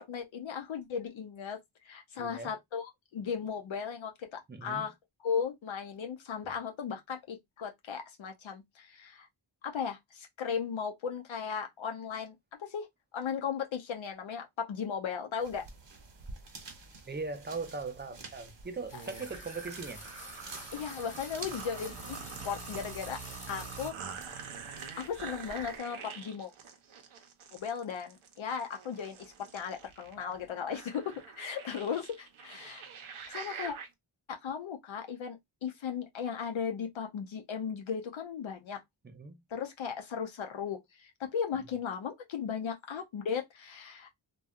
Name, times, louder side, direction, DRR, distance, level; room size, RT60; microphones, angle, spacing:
voice 1, 0.0-4.9 5.2-9.3 9.6-12.9 13.1-15.7 20.7-23.2 23.5-24.4 25.0-26.5 27.5-32.9 33.3-33.8 34.3-38.8 39.5-44.1, left 7 dB, 75° left, 0.6 m, -36 dB
voice 2, 2.2-2.5 4.5-4.9 17.1-20.0 39.0-39.4, right 4 dB, 20° right, 0.5 m, -40 dB
sound 1, 15.4-25.8, right 3 dB, 60° right, 0.9 m, -51 dB
sound 2, 18.9-23.9, left 1 dB, 15° left, 0.9 m, -48 dB
sound 3, 18.9-33.9, right 6 dB, 90° right, 0.7 m, -46 dB
2.7 x 2.2 x 2.3 m
wide cardioid pair, 65°, 48 cm